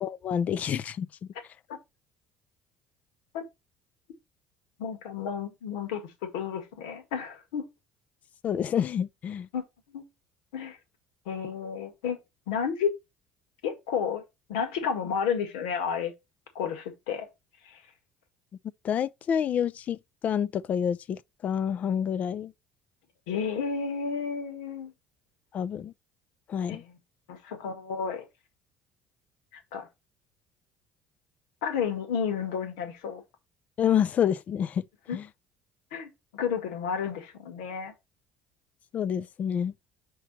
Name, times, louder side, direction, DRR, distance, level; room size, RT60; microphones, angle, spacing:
voice 1, 0.0-1.1 8.4-9.5 18.8-20.0 20.2-22.5 25.5-25.9 26.5-26.8 33.8-34.8 35.1-35.3 38.9-39.7, left 8 dB, 50° left, 0.5 m, -28 dB
voice 2, 4.8-7.7 9.5-9.6 9.9-10.0 10.5-10.8 11.3-12.2 12.5-12.9 13.6-14.2 14.5-16.1 16.6-17.3 17.7-17.8 23.3-24.9 26.7-27.0 27.3-28.3 29.5-29.9 31.6-33.2 35.1-35.2 35.9-37.9, left 7 dB, 80° left, 1.8 m, -31 dB
5.7 x 4.7 x 4.1 m
hypercardioid pair, 70°, 3 cm